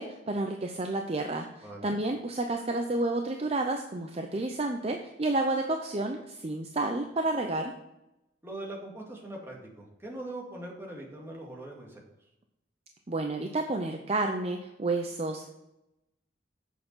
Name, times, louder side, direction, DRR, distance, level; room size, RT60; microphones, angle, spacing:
voice 1, 0.0-7.7 13.1-15.5, right 2 dB, 35° right, 4 dB, 0.6 m, -30 dB
voice 2, 1.6-2.0 8.4-12.0, right 1 dB, 15° right, -2 dB, 2.1 m, -41 dB
8.3 x 6.7 x 5.6 m, 0.91 s
head